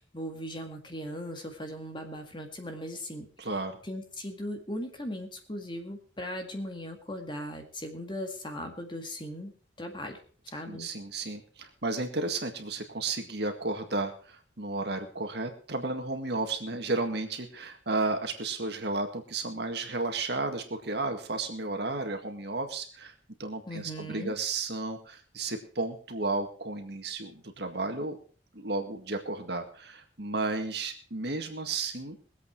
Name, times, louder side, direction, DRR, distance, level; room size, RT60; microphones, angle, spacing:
voice 1, 0.0-9.5 9.8-10.2 10.4-10.9 23.7-24.3, equal, 25° left, 4 dB, 2.0 m, -38 dB
voice 2, 3.4-3.7 10.7-23.1 23.4-28.2 28.5-32.2, right 3 dB, 60° right, 5 dB, 1.9 m, -33 dB
21.5 x 8.2 x 4.7 m, 0.40 s
head